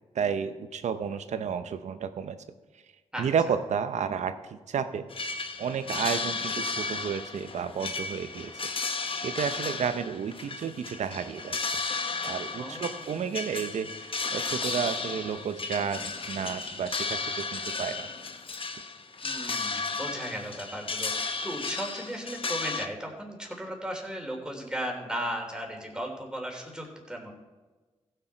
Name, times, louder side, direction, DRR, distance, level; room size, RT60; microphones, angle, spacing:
voice 1, 0.1-2.4 3.2-5.1 5.6-8.5 9.2-11.8 12.2-18.1, right 7 dB, 75° right, 11 dB, 0.7 m, -32 dB
sound 1, 5.1-22.9, left 4 dB, 50° left, 0.9 m, -34 dB
voice 2, 12.6-13.1 19.2-27.3, equal, 5° right, 0 dB, 3.4 m, -36 dB
15.5 x 6.7 x 4.4 m, 1.2 s
supercardioid pair, 45°, 12 cm